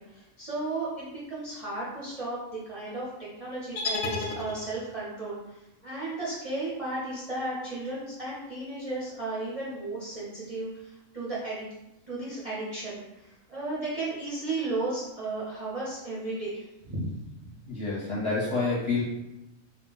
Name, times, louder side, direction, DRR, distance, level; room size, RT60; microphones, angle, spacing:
voice 1, 0.1-3.1 3.4-11.6 12.1-17.1, right 2 dB, 40° right, -9 dB, 0.5 m, -34 dB
sound 1, 3.8-5.1, left 3 dB, 90° left, 1.0 m, -32 dB
voice 2, 17.7-19.0, left 3 dB, 25° left, -8 dB, 0.7 m, -28 dB
2.3 x 2.1 x 3.8 m, 0.92 s
omnidirectional pair, 1.4 m